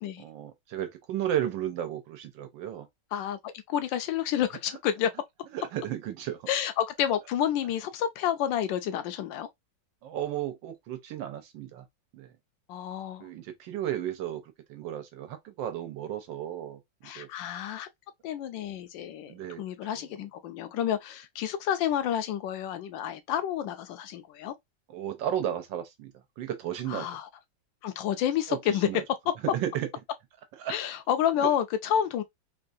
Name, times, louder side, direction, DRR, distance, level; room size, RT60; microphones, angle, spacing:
voice 1, 0.2-2.9 5.5-6.4 10.0-11.8 12.1-12.3 13.2-14.4 14.7-16.8 17.2-17.3 19.3-19.6 24.9-26.1 26.4-27.1 28.5-28.6 28.8-29.0 29.5-29.9 30.6-30.8 31.4-31.5, right 11 dB, 85° right, 1.5 m, -33 dB
voice 2, 3.7-5.1 6.5-9.5 12.7-13.3 17.0-17.9 18.2-24.5 26.9-27.3 27.8-28.9 30.7-32.2, left 10 dB, 85° left, 1.3 m, -29 dB
3.6 x 2.4 x 2.6 m
omnidirectional pair, 2.0 m